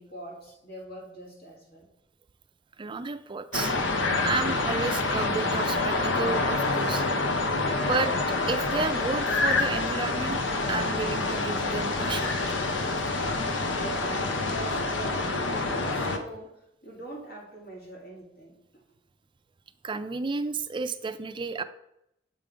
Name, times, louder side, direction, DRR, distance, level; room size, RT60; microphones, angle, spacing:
voice 1, 0.0-1.9 13.7-18.6, right 1 dB, 55° left, -1 dB, 2.0 m, -43 dB
voice 2, 2.8-3.8 4.2-7.1 7.8-12.8 19.8-21.6, right 4 dB, 25° right, 9 dB, 0.4 m, -32 dB
sound 1, 3.5-16.2, left 3 dB, 80° left, 0.8 m, -27 dB
7.5 x 3.5 x 5.0 m, 0.80 s
head